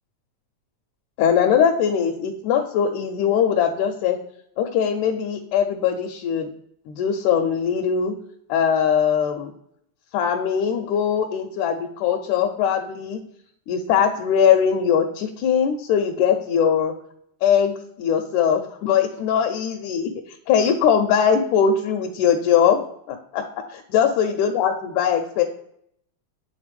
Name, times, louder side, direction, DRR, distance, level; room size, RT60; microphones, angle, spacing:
voice 1, 1.2-4.2 4.6-6.5 6.9-8.2 8.5-9.5 10.1-13.2 13.7-16.9 17.4-20.1 20.5-23.4 23.7-25.4, left 8 dB, 85° left, 3 dB, 2.0 m, -21 dB
7.9 x 3.6 x 3.3 m, 0.71 s
omnidirectional pair, 3.5 m